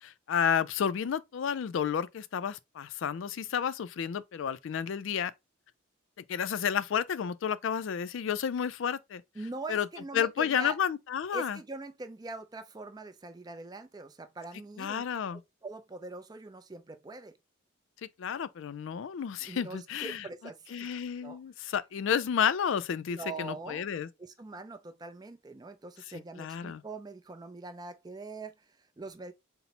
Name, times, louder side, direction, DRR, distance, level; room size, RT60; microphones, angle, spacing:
voice 1, 0.0-5.3 6.3-9.2 9.7-9.9 10.1-11.6 14.8-15.4 18.2-20.2 20.7-24.1 26.4-26.8, left 8 dB, 60° left, 0.3 m, -31 dB
voice 2, 9.3-10.8 11.3-15.0 15.3-17.3 19.4-20.9 21.2-21.4 23.1-23.9 24.2-29.3, right 3 dB, 20° right, 0.3 m, -43 dB
4.1 x 2.0 x 4.1 m
head